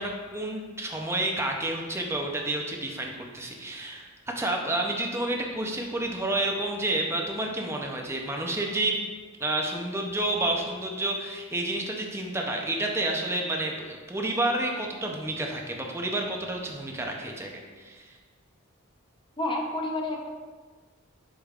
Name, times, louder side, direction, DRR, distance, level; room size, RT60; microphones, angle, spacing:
voice 1, 0.0-4.1 4.4-9.0 9.4-18.1, right 1 dB, 10° right, 1 dB, 0.6 m, -30 dB
voice 2, 19.4-20.3, left 1 dB, 25° left, 1 dB, 0.7 m, -29 dB
8.1 x 5.1 x 2.5 m, 1.4 s
head